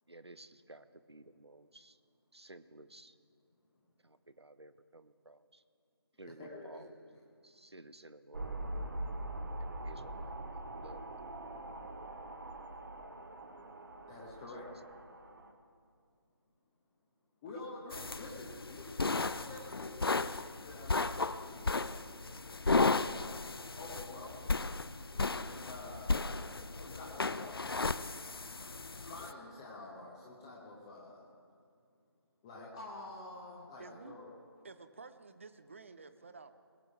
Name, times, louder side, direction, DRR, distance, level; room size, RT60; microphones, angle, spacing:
voice 1, 0.1-2.0 2.3-3.1 4.0-5.6 6.2-7.0 7.4-8.8 9.6-11.3, right 2 dB, 80° right, 12 dB, 0.8 m, -55 dB
voice 2, 6.4-6.8 14.1-14.7 17.4-18.9 19.2-23.3 23.8-24.5 25.1-27.7 28.6-28.7 29.0-31.3 32.4-34.3, left 2 dB, 10° left, -4 dB, 0.9 m, -48 dB
sound 1, 8.3-15.5, right 1 dB, 50° right, 1.2 m, -43 dB
sound 2, 17.9-29.3, left 3 dB, 65° left, 0.5 m, -35 dB
voice 3, 33.8-34.2 34.6-36.5, right 4 dB, 30° right, 11 dB, 0.6 m, -51 dB
21.5 x 7.9 x 4.8 m, 2.2 s
figure-of-eight pair, 155°, 14 cm